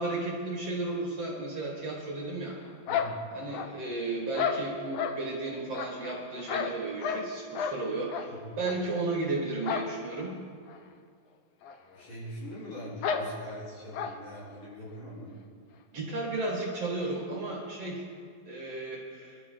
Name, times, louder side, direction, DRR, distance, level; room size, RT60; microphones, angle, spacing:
voice 1, 0.0-2.6 3.3-10.3 15.9-18.1 18.5-19.4, right 2 dB, 50° right, -2 dB, 2.7 m, -34 dB
sound 1, 2.9-3.9 4.3-5.2 5.7-7.3 7.5-7.8 8.1-8.3 8.6-8.8 9.6-9.9 10.2-10.3 10.7-10.8 11.6-11.7 12.0-12.1 13.0-13.3 13.9-14.2, left 7 dB, 90° left, 1.4 m, -32 dB
voice 2, 2.9-3.2 8.3-8.6 11.9-15.4, equal, 50° left, -8 dB, 5.5 m, -42 dB
24.5 x 12.5 x 3.9 m, 2.1 s
omnidirectional pair, 4.1 m